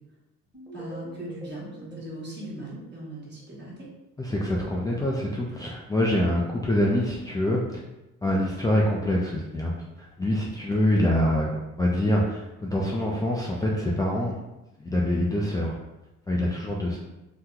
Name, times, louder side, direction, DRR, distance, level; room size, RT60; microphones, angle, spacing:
sound 1, 0.5-3.5, right 2 dB, 5° right, 1.3 m, -46 dB
voice 1, 0.7-3.9, right 1 dB, 35° right, -5 dB, 1.3 m, -39 dB
voice 2, 4.2-7.6 8.2-14.3 14.8-15.8 16.3-17.0, left 1 dB, 10° left, -4 dB, 0.4 m, -25 dB
2.9 x 2.2 x 3.7 m, 0.99 s
cardioid pair, 90°, 30 cm